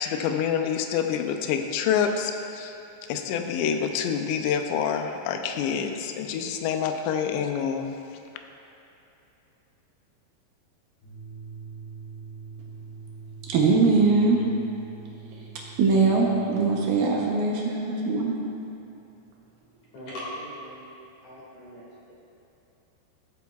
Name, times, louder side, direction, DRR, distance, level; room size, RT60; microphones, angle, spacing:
voice 1, 0.0-2.7 3.1-7.9, left 7 dB, 90° left, 5 dB, 2.9 m, -27 dB
sound 1, 11.0-17.2, right 5 dB, 75° left, 3.4 m, -43 dB
voice 2, 13.5-14.4 15.3-15.4 15.8-18.4, right 4 dB, 75° right, -2 dB, 2.1 m, -22 dB
voice 3, 19.9-20.9 21.2-21.8, equal, 50° left, -8 dB, 3.1 m, -39 dB
14.0 x 7.9 x 2.3 m, 2.9 s
omnidirectional pair, 5.0 m